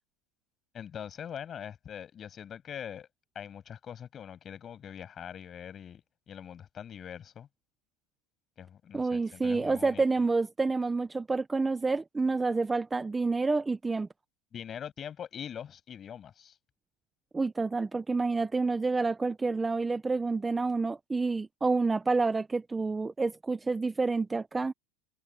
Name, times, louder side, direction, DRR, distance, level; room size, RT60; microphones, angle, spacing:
voice 1, 0.7-3.1 3.4-7.5 8.6-10.0 14.5-16.6, left 8 dB, 25° left, 6.8 m, -43 dB
voice 2, 8.9-14.1 17.3-24.7, right 3 dB, 10° right, 0.6 m, -28 dB
supercardioid pair, 150°, 0 cm